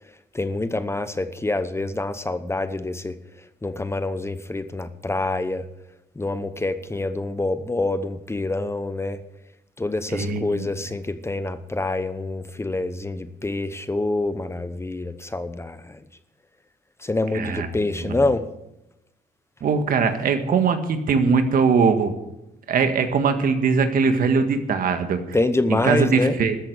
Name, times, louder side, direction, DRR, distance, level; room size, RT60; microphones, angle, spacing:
voice 1, 0.3-3.2 3.6-5.7 6.2-9.2 9.8-16.0 17.0-18.4 25.3-26.4, left 2 dB, 15° left, 11 dB, 0.9 m, -26 dB
voice 2, 10.1-10.7 17.3-17.7 18.0-18.2 19.6-22.1 22.7-25.2 25.7-26.6, right 5 dB, 60° right, 7 dB, 1.8 m, -21 dB
13.5 x 8.0 x 8.0 m, 0.92 s
cardioid pair, 80°, 17 cm